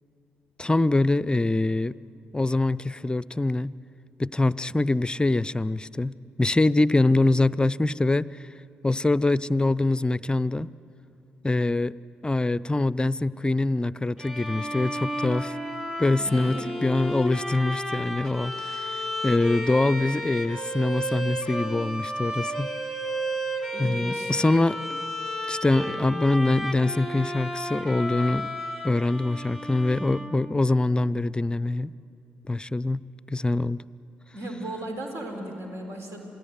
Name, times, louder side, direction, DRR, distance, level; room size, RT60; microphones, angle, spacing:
voice 1, 0.6-2.0 2.3-3.7 4.2-8.3 8.8-10.7 11.4-12.0 12.2-15.6 16.0-22.7 23.8-25.0 25.5-28.5 28.8-31.9 32.5-33.0 33.3-33.8, left 2 dB, 15° left, 19 dB, 0.6 m, -24 dB
Bowed string instrument, 14.2-30.7, equal, 10° right, 4.5 m, -33 dB
voice 2, 16.2-16.7 23.7-24.3 34.3-36.2, right 1 dB, 55° right, 2 dB, 4.0 m, -36 dB
27.5 x 18.5 x 9.5 m, 2.7 s
figure-of-eight pair, 40°, 5 cm